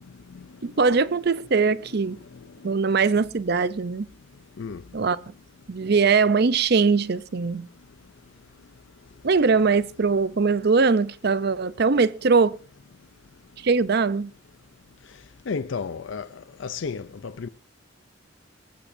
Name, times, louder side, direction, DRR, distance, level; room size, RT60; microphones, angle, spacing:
voice 1, 0.6-2.2 2.6-4.1 4.9-5.3 5.7-7.7 9.2-12.6 13.6-14.3, right 4 dB, 55° right, 0.6 m, -21 dB
voice 2, 15.5-16.3 16.6-17.5, left 5 dB, 75° left, 0.5 m, -32 dB
19.0 x 15.0 x 2.6 m
head